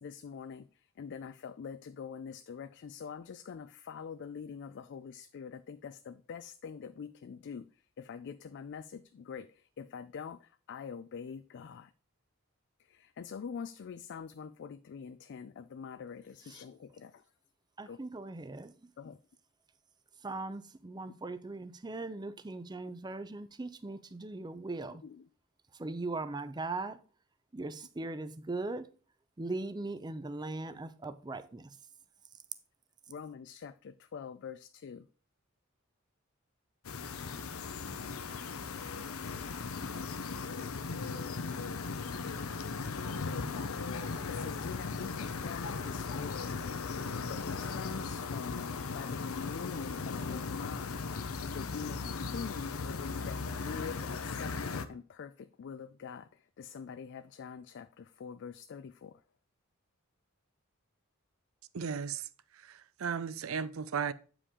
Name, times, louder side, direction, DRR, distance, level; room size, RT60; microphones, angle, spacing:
voice 1, 0.0-11.9 12.8-17.3 17.9-18.0 19.0-19.2 25.0-25.2 33.1-35.1 39.8-40.6 44.0-46.6 47.1-51.2 51.5-59.2, left 6 dB, 55° left, 0.3 m, -45 dB
voice 2, 17.8-18.9 20.2-25.0 25.7-27.0 27.5-28.9 29.4-31.8, right 2 dB, 20° right, 0.5 m, -39 dB
sound 1, 36.8-54.9, left 4 dB, 85° left, 0.7 m, -37 dB
voice 3, 61.7-62.3 62.5-64.1, right 6 dB, 70° right, 0.5 m, -35 dB
8.3 x 5.0 x 3.7 m
head